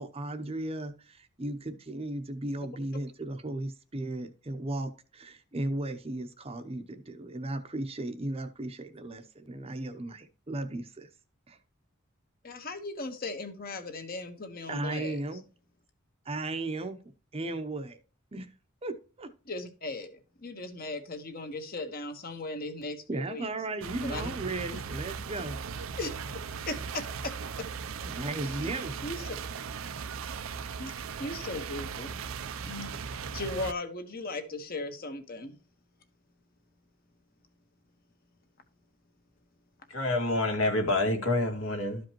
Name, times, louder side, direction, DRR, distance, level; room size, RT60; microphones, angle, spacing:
voice 1, 0.0-11.1 11.5-11.6 14.7-15.4 16.2-17.0 17.3-18.0 18.3-18.5 18.8-19.3 23.1-25.6 28.0-29.2, right 2 dB, 30° right, 0.7 m, -36 dB
voice 2, 12.4-15.2 19.5-23.5 24.0-24.3 24.7-24.8 26.0-26.1 26.7-27.7 28.5-29.2 30.8-32.2 32.6-33.0 33.3-35.6, left 2 dB, 45° left, 1.3 m, -38 dB
sound 1, 23.8-33.7, right 6 dB, 75° right, 0.5 m, -38 dB
voice 3, 39.9-42.0, left 2 dB, 70° left, 2.1 m, -27 dB
13.0 x 5.1 x 3.0 m
head